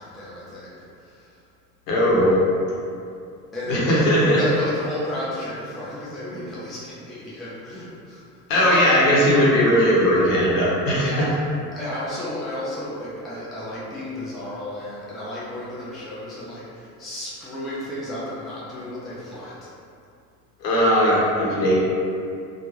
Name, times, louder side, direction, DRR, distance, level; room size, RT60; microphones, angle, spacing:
voice 1, 0.0-1.4 3.5-9.1 11.0-11.4 11.7-19.6, left 1 dB, ahead, -9 dB, 0.3 m, -32 dB
voice 2, 1.9-2.4 3.7-4.4 8.5-11.1 20.6-21.8, equal, 75° left, -6 dB, 1.0 m, -18 dB
2.5 x 2.2 x 3.1 m, 2.5 s
hypercardioid pair, 80°, 49 cm